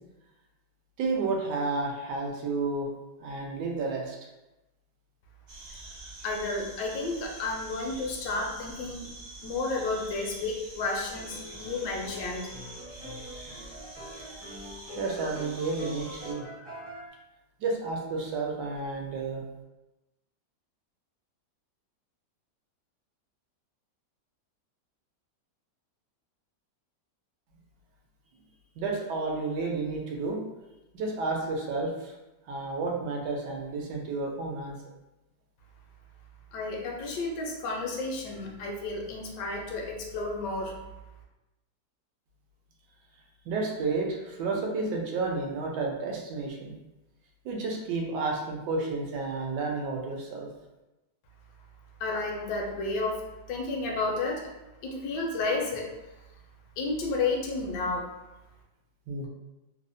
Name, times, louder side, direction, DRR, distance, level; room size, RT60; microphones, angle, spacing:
voice 1, 1.0-2.9 3.2-4.2 14.9-16.4 17.6-19.4 28.8-30.4 30.9-32.1 32.5-34.7 43.4-46.7 47.4-50.5 59.1-59.3, right 3 dB, 80° right, 0 dB, 1.2 m, -31 dB
sound 1, 5.5-16.3, right 1 dB, 55° right, 0.7 m, -46 dB
voice 2, 6.2-9.1 9.4-12.5 36.5-40.8 52.0-53.2 53.5-54.5 54.8-55.9 56.2-56.3 56.8-58.1, left 3 dB, 80° left, 0 dB, 1.2 m, -32 dB
sound 2, 11.1-17.1, left 1 dB, 15° right, 0.3 m, -44 dB
3.2 x 2.0 x 2.5 m, 1.0 s
omnidirectional pair, 1.9 m